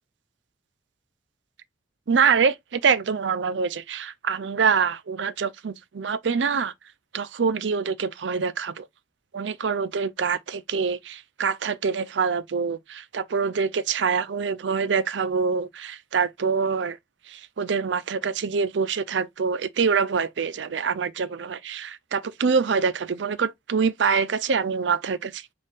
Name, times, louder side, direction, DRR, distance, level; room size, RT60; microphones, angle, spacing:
voice 1, 2.1-6.7 7.1-8.9 9.3-17.0 17.3-25.4, right 5 dB, 90° right, 0.5 m, -25 dB
5.4 x 2.5 x 3.9 m
head